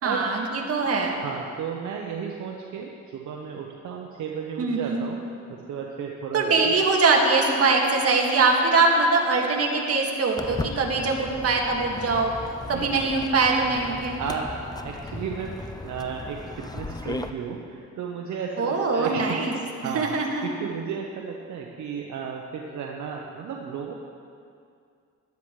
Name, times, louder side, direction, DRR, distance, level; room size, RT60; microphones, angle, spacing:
voice 1, 0.0-1.2 4.6-5.1 6.3-12.3 12.7-14.2 18.6-19.5 19.8-20.4, right 3 dB, 50° right, 0 dB, 2.1 m, -22 dB
voice 2, 1.2-5.2 5.5-6.8 12.6-12.9 14.2-14.5 14.8-20.1 20.4-23.9, right 6 dB, 70° right, 0 dB, 1.1 m, -34 dB
Walk footsteps, 10.4-17.3, left 2 dB, 15° left, 0.6 m, -36 dB
17.5 x 12.0 x 3.3 m, 2.4 s
cardioid pair, 90°, 30 cm